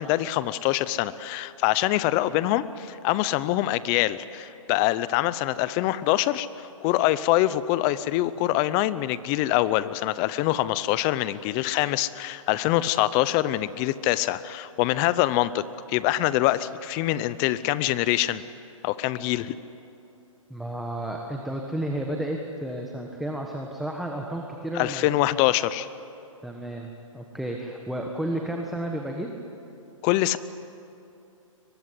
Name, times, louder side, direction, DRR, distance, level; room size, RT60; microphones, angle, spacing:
voice 1, 0.0-18.4 18.8-19.6 24.7-25.9 30.0-30.4, left 15 dB, 25° left, 16 dB, 0.6 m, -24 dB
voice 2, 20.5-25.1 26.4-29.3, right 1 dB, ahead, 1 dB, 1.3 m, -32 dB
23.0 x 20.0 x 9.9 m, 2.8 s
hypercardioid pair, 150°, 17 cm